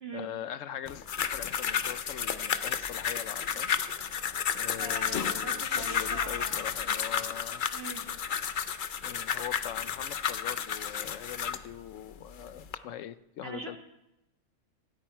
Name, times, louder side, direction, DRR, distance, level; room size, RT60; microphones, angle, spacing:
voice 1, 0.0-3.7 4.5-7.6 9.0-13.8, left 10 dB, 80° left, 14 dB, 1.1 m, -42 dB
sound 1, 0.9-11.7 12.3-12.8, left 7 dB, 50° left, 0.7 m, -32 dB
voice 2, 4.8-6.5 7.7-8.0 13.4-13.8, right 3 dB, 50° right, 2 dB, 1.8 m, -41 dB
26.5 x 8.8 x 4.5 m, 0.91 s
omnidirectional pair, 1.3 m